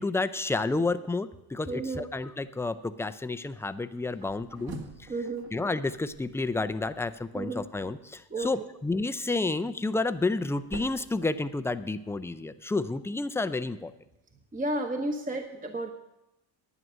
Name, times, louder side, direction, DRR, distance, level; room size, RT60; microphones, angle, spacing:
voice 1, 0.0-4.7 5.0-5.1 5.5-13.9, left 3 dB, 5° left, 11 dB, 0.3 m, -30 dB
voice 2, 1.7-2.1 5.1-5.5 7.3-7.6 8.3-8.5 14.5-15.9, right 2 dB, 15° right, 4 dB, 0.9 m, -32 dB
sound 1, 4.1-7.2 9.4-12.0, right 2 dB, 50° right, 1.9 m, -47 dB
11.0 x 9.3 x 6.3 m, 0.91 s
cardioid pair, 110°, 47 cm